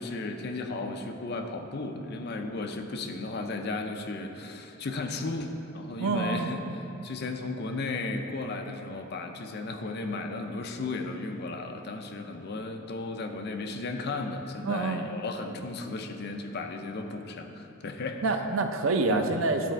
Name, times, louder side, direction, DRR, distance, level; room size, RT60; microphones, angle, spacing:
voice 1, 0.0-6.6 7.0-18.4 19.1-19.3, left 3 dB, 50° left, 5 dB, 0.5 m, -35 dB
voice 2, 6.0-6.5 14.6-15.1 18.2-19.7, right 3 dB, 75° right, 6 dB, 0.5 m, -27 dB
10.0 x 4.1 x 4.4 m, 2.8 s
head